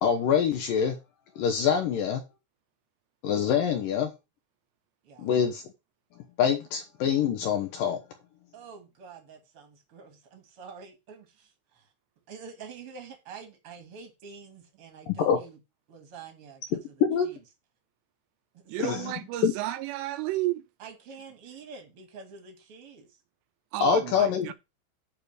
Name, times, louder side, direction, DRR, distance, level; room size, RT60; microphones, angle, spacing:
voice 1, 0.0-1.0 1.4-2.2 3.2-4.1 5.2-5.6 6.4-8.0 15.2-15.4 17.0-17.3 18.8-19.1 19.4-19.5 23.8-24.5, left 7 dB, 75° left, 2.1 m, -25 dB
voice 2, 5.0-5.4 8.5-11.9 12.3-15.6 15.9-16.9 17.2-17.4 18.5-19.0 20.8-23.2, right 5 dB, 50° right, 1.8 m, -47 dB
voice 3, 18.7-20.7 23.7-24.5, right 16 dB, 80° right, 2.6 m, -32 dB
9.0 x 4.4 x 6.6 m
omnidirectional pair, 5.3 m